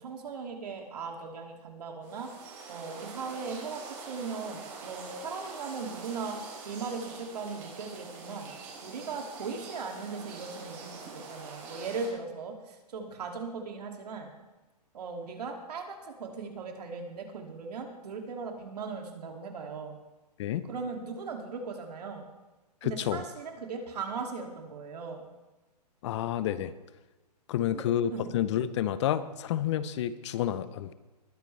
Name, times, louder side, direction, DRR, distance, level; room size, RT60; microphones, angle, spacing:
voice 1, 0.0-2.3 2.7-6.4 6.7-8.5 8.8-14.3 14.9-20.0 20.6-22.3 22.8-25.3 27.7-28.3, right 4 dB, 70° right, 2 dB, 2.6 m, -38 dB
sound 1, 2.0-12.1, right 4 dB, 35° right, 4.5 m, -45 dB
voice 2, 22.8-23.2 26.0-26.7 27.5-30.9, left 11 dB, 45° left, 15 dB, 0.7 m, -29 dB
20.5 x 9.6 x 3.3 m, 1.1 s
hypercardioid pair, 135°, 21 cm